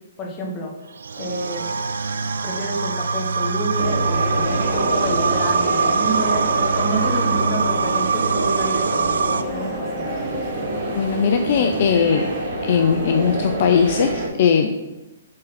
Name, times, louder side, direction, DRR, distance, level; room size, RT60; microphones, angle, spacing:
voice 1, 0.2-0.7 1.2-1.7 2.2-6.5 6.7-10.3, equal, 25° left, 1 dB, 1.4 m, -29 dB
sound 1, 1.0-9.4, right 4 dB, 80° right, 0.3 m, -23 dB
sound 2, 3.8-14.3, right 2 dB, 55° right, 1.8 m, -27 dB
sound 3, 3.9-10.5, right 2 dB, 30° right, 0.9 m, -41 dB
voice 2, 11.0-12.3 12.6-14.9, left 7 dB, 55° left, 6 dB, 0.5 m, -19 dB
7.3 x 3.9 x 4.2 m, 1.0 s
hypercardioid pair, 135°, 0 cm